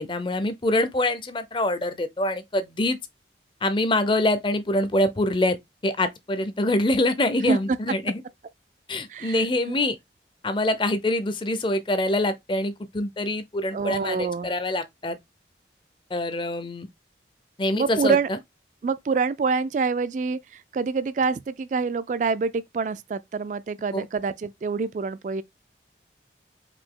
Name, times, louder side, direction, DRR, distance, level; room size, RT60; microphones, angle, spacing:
voice 1, 0.0-3.0 3.6-5.6 5.8-8.2 8.9-10.0 10.4-15.2 16.1-16.9 17.6-18.2 23.9-24.0, left 1 dB, 25° left, 0.5 m, -25 dB
voice 2, 7.5-7.8 9.1-9.9 13.7-14.5 17.7-18.3 18.8-25.4, right 4 dB, 45° right, 0.3 m, -26 dB
4.9 x 2.7 x 3.7 m
head